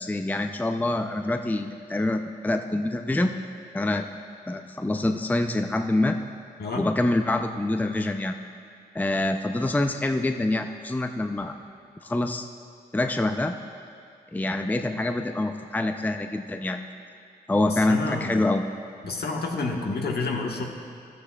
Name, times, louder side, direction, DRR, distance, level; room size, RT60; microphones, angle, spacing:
voice 1, 0.0-3.3 3.7-4.0 4.5-6.2 6.8-8.4 8.9-11.5 12.0-12.5 12.9-13.6 14.3-16.9 17.5-18.6, left 2 dB, 10° left, 6 dB, 0.5 m, -26 dB
voice 2, 17.7-18.4 19.0-20.6, left 3 dB, 65° left, 1 dB, 1.3 m, -29 dB
13.5 x 13.0 x 2.3 m, 2.4 s
supercardioid pair, 40°, 18 cm